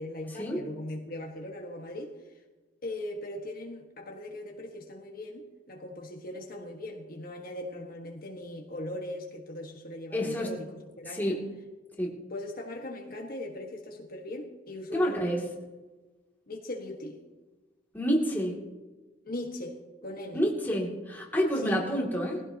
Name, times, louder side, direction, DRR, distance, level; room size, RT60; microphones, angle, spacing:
voice 1, 0.0-2.1 2.8-11.4 12.3-15.5 16.5-17.2 19.3-20.4 21.6-21.8, left 1 dB, 50° left, 1 dB, 1.6 m, -39 dB
voice 2, 10.1-10.5 11.1-11.5 12.0-12.2 14.9-15.4 17.9-18.6 20.3-22.4, equal, 10° left, -3 dB, 2.6 m, -28 dB
21.0 x 16.0 x 2.9 m, 1.2 s
head